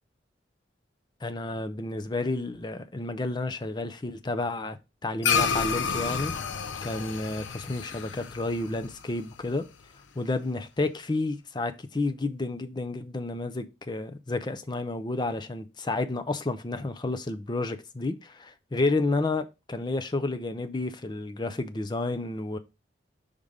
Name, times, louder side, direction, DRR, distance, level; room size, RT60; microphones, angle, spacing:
voice 1, 1.2-4.8 5.0-6.3 6.8-9.6 10.2-22.6, left 2 dB, 25° left, 0.5 m, -31 dB
sound 1, 5.2-9.9, left 6 dB, 85° left, 0.5 m, -30 dB
5.0 x 3.6 x 5.3 m
head